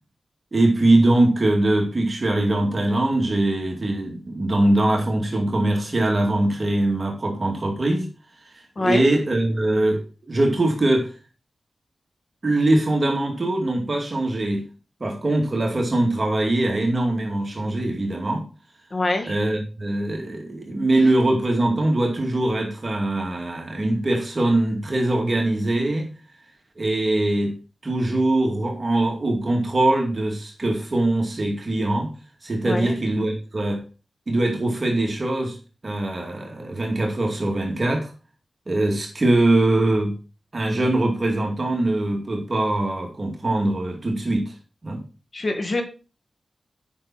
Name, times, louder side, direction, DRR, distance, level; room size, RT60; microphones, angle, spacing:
voice 1, 0.5-8.1 8.8-10.0 10.3-11.1 12.4-14.6 15.0-18.4 19.2-26.1 26.8-27.5 27.8-32.1 32.4-33.8 34.3-35.6 35.8-38.1 38.7-40.2 40.5-44.5 44.8-45.0, right 1 dB, 40° right, 2.3 m, -22 dB
voice 2, 8.8-9.1 18.9-19.3 32.6-33.0 45.3-45.8, left 2 dB, 50° left, 1.8 m, -24 dB
8.7 x 5.9 x 4.2 m
cardioid pair, 65°, 0 cm